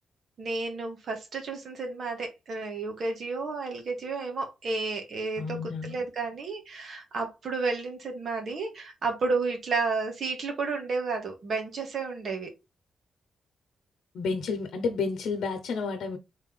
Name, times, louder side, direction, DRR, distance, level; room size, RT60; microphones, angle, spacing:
voice 1, 0.4-12.5, right 4 dB, 50° right, 1.7 m, -32 dB
voice 2, 5.4-6.0 14.1-16.2, left 4 dB, 80° left, 0.9 m, -31 dB
4.0 x 3.5 x 3.6 m
wide cardioid pair, 170°, 0 cm